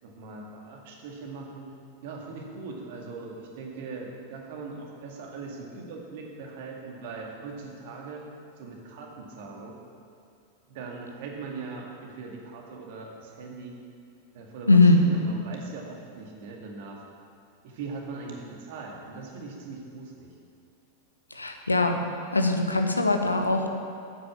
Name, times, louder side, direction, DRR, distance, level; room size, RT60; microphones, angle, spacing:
voice 1, 0.0-1.7 2.0-8.2 8.6-9.7 10.7-13.7 14.3-17.0 17.6-20.3, right 4 dB, 50° right, 0 dB, 2.0 m, -40 dB
voice 2, 14.7-15.0 21.3-22.0 22.3-23.7, left 2 dB, 80° left, 5 dB, 1.0 m, -21 dB
9.6 x 8.7 x 7.1 m, 2.5 s
figure-of-eight pair, 90°, 0 cm